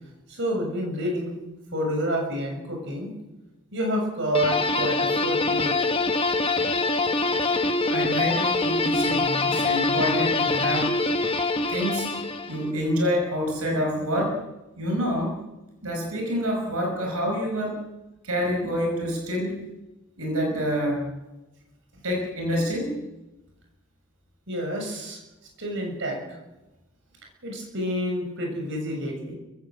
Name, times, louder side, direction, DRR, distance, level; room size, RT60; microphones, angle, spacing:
voice 1, 0.3-1.3 1.7-3.1 3.7-5.9 24.5-25.2 25.6-26.4 27.4-29.3, equal, 55° right, 2 dB, 7.2 m, -29 dB
sound 1, 4.3-12.7, left 3 dB, 25° left, 1.4 m, -24 dB
voice 2, 7.9-10.9 11.7-12.1 12.5-14.4 14.8-15.4 15.8-17.8 18.2-19.6 20.2-21.1 22.0-23.0, equal, 85° right, 2 dB, 5.3 m, -27 dB
29.5 x 16.0 x 7.7 m, 1.0 s
head